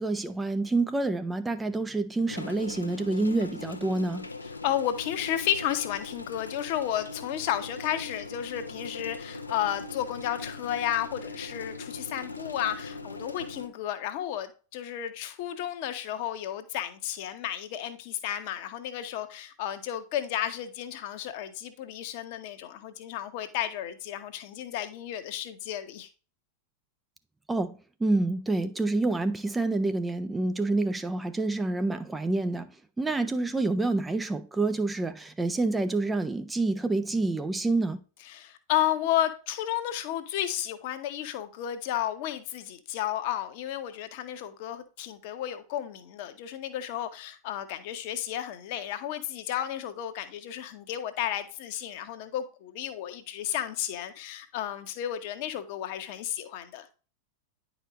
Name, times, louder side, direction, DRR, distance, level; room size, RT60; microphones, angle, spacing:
voice 1, 0.0-4.2 27.5-27.7 28.0-32.7 33.0-38.0, right 2 dB, 10° right, 0.5 m, -27 dB
sound 1, 2.3-13.7, left 3 dB, 80° left, 0.7 m, -41 dB
voice 2, 4.4-26.1 38.2-56.9, left 11 dB, 50° left, 1.0 m, -32 dB
9.9 x 5.1 x 3.0 m
figure-of-eight pair, 90°, 0 cm